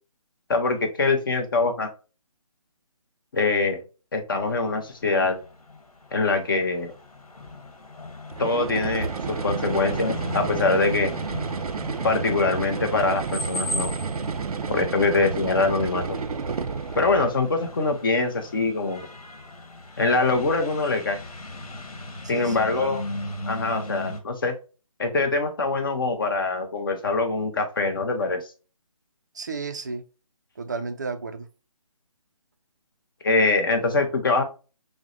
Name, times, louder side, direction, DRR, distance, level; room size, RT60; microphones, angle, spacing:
voice 1, 0.5-1.9 3.3-3.8 4.1-5.4 6.1-6.9 8.4-11.1 12.0-13.9 14.7-16.2 17.0-19.1 20.0-21.2 22.3-23.0 23.5-24.5 25.0-28.5 33.2-34.4, left 3 dB, 35° left, 0.7 m, -23 dB
sound 1, 4.4-24.2, left 1 dB, 80° left, 1.2 m, -38 dB
sound 2, 8.3-17.4, right 5 dB, 85° right, 0.5 m, -30 dB
voice 2, 22.2-22.9 29.3-30.0 30.6-31.5, right 4 dB, 30° right, 0.4 m, -33 dB
6.0 x 2.1 x 2.5 m
hypercardioid pair, 165°, 19 cm